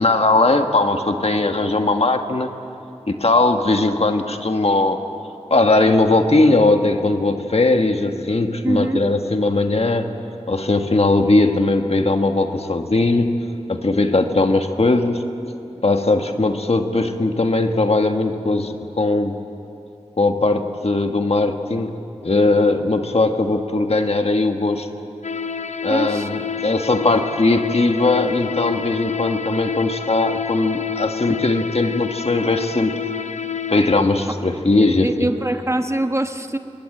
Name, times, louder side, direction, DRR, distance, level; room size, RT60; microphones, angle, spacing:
voice 1, 0.0-2.5 3.1-5.0 5.5-10.1 10.5-13.4 13.7-15.2 15.8-19.4 20.2-21.9 22.2-24.9 25.8-32.9 33.7-35.3, left 2 dB, 60° left, 6 dB, 1.4 m, -19 dB
voice 2, 8.6-9.1 25.9-26.3 35.0-36.6, right 1 dB, 25° right, 6 dB, 1.2 m, -23 dB
sound 1, 25.2-34.0, left 7 dB, 90° left, 0.6 m, -28 dB
25.5 x 21.0 x 7.8 m, 2.8 s
wide cardioid pair, 65°, 12 cm